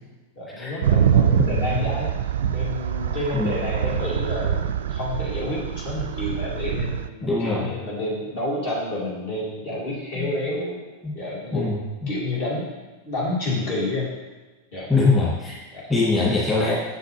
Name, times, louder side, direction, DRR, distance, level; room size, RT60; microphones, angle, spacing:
voice 1, 0.4-2.1 2.5-10.8 11.1-11.7 12.1-14.1 14.7-14.9 15.7-15.9, left 2 dB, 50° left, -5 dB, 2.3 m, -29 dB
sound 1, 0.8-7.1, right 8 dB, 60° right, 0.3 m, -24 dB
voice 2, 1.4-1.8 3.3-3.6 7.2-7.7 10.2-10.3 11.0-11.1 11.5-12.1 14.9-15.6 15.9-16.7, left 3 dB, 15° left, -7 dB, 2.1 m, -22 dB
6.9 x 5.8 x 3.1 m, 1.2 s
figure-of-eight pair, 90°, 0 cm